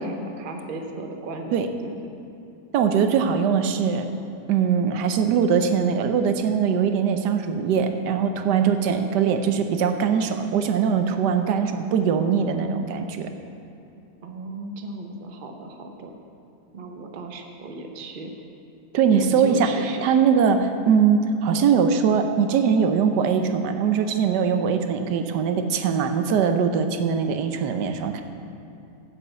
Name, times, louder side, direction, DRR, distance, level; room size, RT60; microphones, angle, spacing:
voice 1, 0.0-1.5 1.8-1.9 14.2-16.1 16.7-18.3 19.1-20.0, right 2 dB, 40° right, 3 dB, 0.9 m, -36 dB
voice 2, 2.7-4.1 4.5-13.3 18.9-28.2, right 6 dB, 90° right, 7 dB, 1.3 m, -21 dB
7.7 x 7.5 x 7.9 m, 2.8 s
omnidirectional pair, 1.8 m